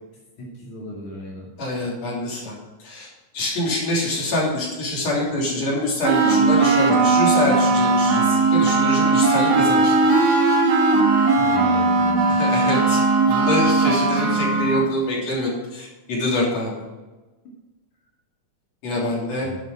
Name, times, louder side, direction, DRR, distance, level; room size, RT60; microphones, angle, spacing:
voice 1, 0.4-1.5 11.4-12.3 19.4-19.6, left 1 dB, 80° left, -5 dB, 3.8 m, -35 dB
voice 2, 1.6-2.5 2.8-3.1 3.3-10.0 12.3-16.7 18.8-19.5, left 1 dB, 60° left, -4 dB, 4.4 m, -25 dB
sound 1, 6.0-14.9, right 3 dB, 65° right, 3.1 m, -18 dB
11.0 x 9.0 x 4.9 m, 1.1 s
omnidirectional pair, 3.4 m